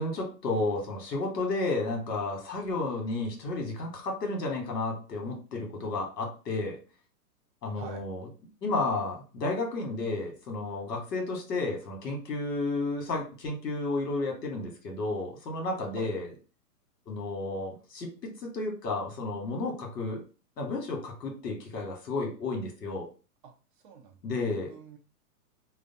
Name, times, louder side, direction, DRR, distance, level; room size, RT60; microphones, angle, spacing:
voice 1, 0.0-6.8 7.6-8.3 8.6-16.3 17.1-20.2 20.6-23.1 24.2-24.7, left 2 dB, 85° left, 1 dB, 1.2 m, -32 dB
voice 2, 7.7-8.0 15.9-16.1 23.4-23.5 23.8-25.0, right 6 dB, 35° right, 2 dB, 0.4 m, -46 dB
2.5 x 2.2 x 2.6 m, 0.35 s
hypercardioid pair, 140°, 47 cm